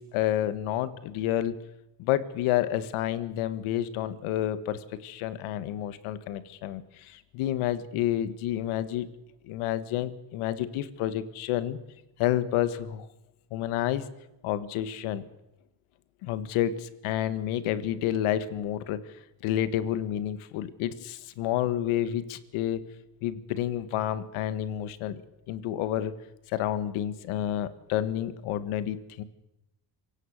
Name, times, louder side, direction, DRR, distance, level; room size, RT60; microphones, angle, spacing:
voice 1, 0.0-1.5 2.0-9.1 9.5-11.8 12.2-13.1 13.5-14.0 14.4-15.2 16.2-19.2 19.4-22.9 23.2-25.2 25.5-26.1 26.5-29.2, left 12 dB, 90° left, 13 dB, 1.6 m, -29 dB
26.5 x 17.5 x 6.5 m, 0.90 s
cardioid pair, 85°, 48 cm